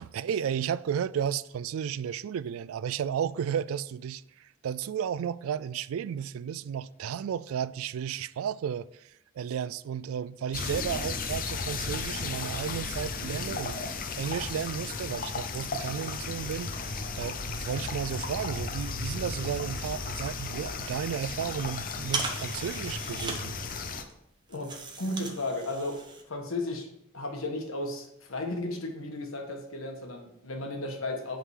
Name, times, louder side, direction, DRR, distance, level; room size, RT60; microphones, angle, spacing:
voice 1, 0.0-13.8 14.2-16.7 17.2-23.6, right 8 dB, 85° right, 0.3 m, -33 dB
sound 1, 10.5-24.0, left 4 dB, 45° left, 0.6 m, -35 dB
sound 2, 16.9-26.2, right 3 dB, 20° right, 0.9 m, -41 dB
voice 2, 24.5-26.0 26.3-26.9 27.1-31.4, left 2 dB, 80° left, 1.3 m, -34 dB
8.1 x 3.8 x 4.8 m
head